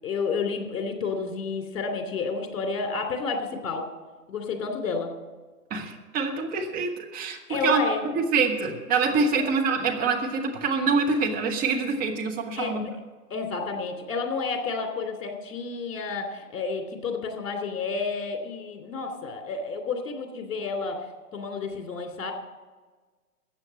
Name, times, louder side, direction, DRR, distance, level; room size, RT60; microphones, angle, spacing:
voice 1, 0.0-3.9 4.3-5.1 7.5-8.0 12.5-12.9 13.3-21.1 21.3-22.3, left 4 dB, 55° left, 4 dB, 2.9 m, -30 dB
voice 2, 5.7-7.4 7.6-7.8 8.1-12.8, right 4 dB, 20° right, 2 dB, 1.3 m, -25 dB
14.0 x 8.3 x 7.5 m, 1.3 s
figure-of-eight pair, 125°, 47 cm